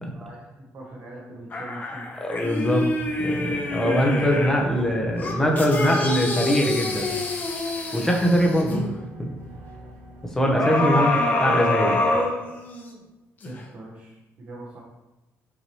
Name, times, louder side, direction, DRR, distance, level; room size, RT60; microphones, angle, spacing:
voice 1, 0.1-2.1 11.0-11.3 13.4-14.8, right 1 dB, 55° right, -5 dB, 1.0 m, -41 dB
sound 1, 1.5-4.7 5.2-8.8 10.6-12.9 13.4-13.5, left 2 dB, 35° left, 0.7 m, -26 dB
voice 2, 2.2-2.9 3.2-7.2 7.9-8.8 9.2-9.3 10.3-11.1 11.4-12.1, equal, 10° left, 0 dB, 0.8 m, -22 dB
sound 2, 2.8-10.5, right 1 dB, 85° right, 1.3 m, -45 dB
5.5 x 2.9 x 3.1 m, 1.0 s
cardioid pair, 115°, 5 cm